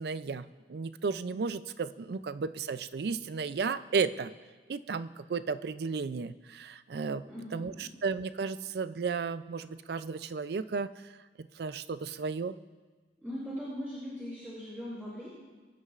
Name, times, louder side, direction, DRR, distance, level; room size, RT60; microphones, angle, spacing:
voice 1, 0.0-4.3 4.7-7.2 7.5-11.1 11.4-12.6, right 5 dB, 60° right, 13 dB, 0.4 m, -34 dB
voice 2, 7.2-7.9 13.2-15.3, equal, 10° right, -10 dB, 3.9 m, -40 dB
22.5 x 9.6 x 2.5 m, 1.4 s
head